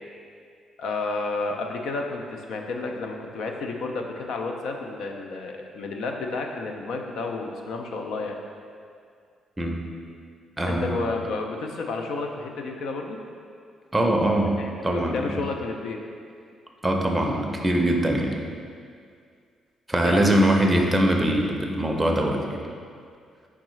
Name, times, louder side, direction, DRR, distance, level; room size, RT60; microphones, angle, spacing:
voice 1, 0.8-8.4 10.6-13.2 14.6-16.0 20.0-20.5, left 3 dB, 75° left, 2 dB, 0.4 m, -31 dB
voice 2, 10.6-11.0 13.9-15.4 16.8-18.4 19.9-22.6, right 1 dB, 10° right, 1 dB, 0.5 m, -22 dB
4.8 x 3.5 x 3.1 m, 2.2 s
cardioid pair, 90°, 0 cm